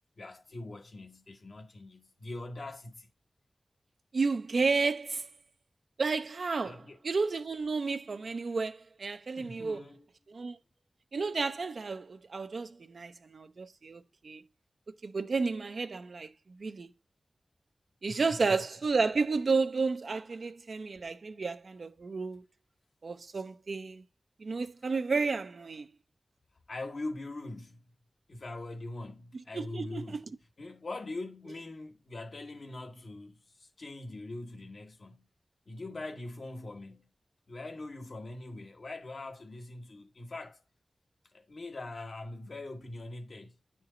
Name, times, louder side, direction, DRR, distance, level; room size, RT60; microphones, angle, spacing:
voice 1, 0.2-3.1 6.6-7.0 9.4-10.1 18.1-18.6 26.7-27.8 28.3-30.2 30.6-35.3 35.7-37.1 37.5-40.6 41.3-43.6, left 2 dB, 70° left, 1.2 m, -42 dB
voice 2, 4.1-5.3 6.0-9.8 10.3-10.6 11.1-14.4 15.0-16.9 18.0-22.4 23.0-24.0 24.4-25.9 29.5-30.2, right 4 dB, 75° right, 0.5 m, -32 dB
8.9 x 4.5 x 3.8 m
cardioid pair, 45°, 0 cm